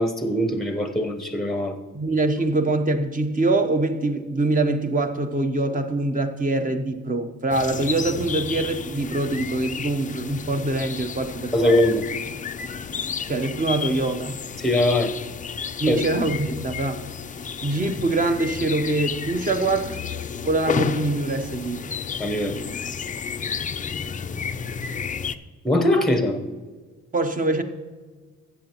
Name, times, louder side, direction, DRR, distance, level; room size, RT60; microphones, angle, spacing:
voice 1, 0.0-1.8 11.5-12.0 14.6-15.1 15.9-16.0 22.2-22.6 25.6-26.4, left 1 dB, ahead, 6 dB, 0.9 m, -21 dB
voice 2, 1.9-11.7 13.3-14.4 15.8-17.1 17.6-20.0 20.4-21.8 27.1-27.6, right 2 dB, 25° right, 7 dB, 1.0 m, -24 dB
sound 1, 7.5-25.4, left 6 dB, 25° left, 0.4 m, -32 dB
13.5 x 8.4 x 3.0 m, 1.4 s
cardioid pair, 90°, 30 cm